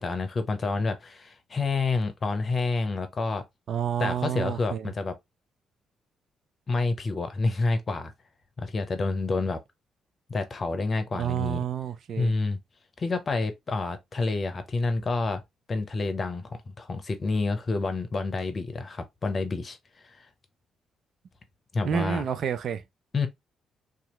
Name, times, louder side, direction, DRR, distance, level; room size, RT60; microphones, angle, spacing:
voice 1, 0.0-3.5 4.0-5.2 6.7-8.1 8.6-9.6 10.3-11.6 12.2-12.6 13.0-15.4 15.7-19.8 20.0-20.3 21.7-22.3 23.1-23.3, left 3 dB, 45° left, 0.8 m, -28 dB
voice 2, 3.7-4.9 11.1-12.3 21.8-22.8, right 8 dB, 65° right, 0.4 m, -29 dB
2.8 x 2.4 x 2.9 m
hypercardioid pair, 45°, 0 cm